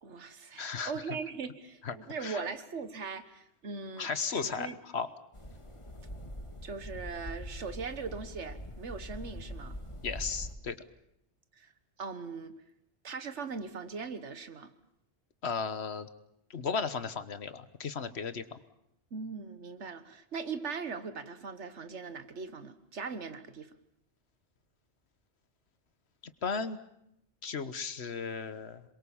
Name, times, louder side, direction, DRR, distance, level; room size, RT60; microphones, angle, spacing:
voice 1, 0.0-4.1 4.4-4.7 6.6-9.8 11.6-11.7 12.0-12.5 13.0-14.7 19.1-23.7, right 5 dB, 90° right, 11 dB, 1.7 m, -40 dB
voice 2, 0.6-1.2 1.8-2.4 4.0-5.1 10.0-10.8 15.4-16.1 16.5-18.6 26.4-26.8 27.4-28.8, left 5 dB, 70° left, 12 dB, 1.5 m, -35 dB
sound 1, 5.3-10.5, equal, 25° left, 2.1 m, -43 dB
27.0 x 22.5 x 7.2 m, 0.77 s
omnidirectional pair, 1.1 m